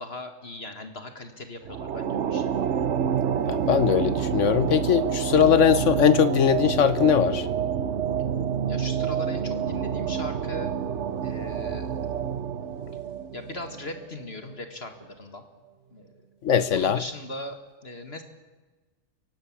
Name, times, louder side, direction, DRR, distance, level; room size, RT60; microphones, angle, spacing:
voice 1, 0.0-2.5 8.7-10.8 11.2-12.1 13.3-15.4 15.9-16.1 16.7-18.2, left 2 dB, 40° left, 1.9 m, -39 dB
sound 1, 1.6-14.2, right 8 dB, 55° right, 1.1 m, -28 dB
voice 2, 3.5-7.5 16.4-17.0, left 8 dB, 60° left, 1.1 m, -20 dB
24.0 x 17.5 x 8.7 m
omnidirectional pair, 1.6 m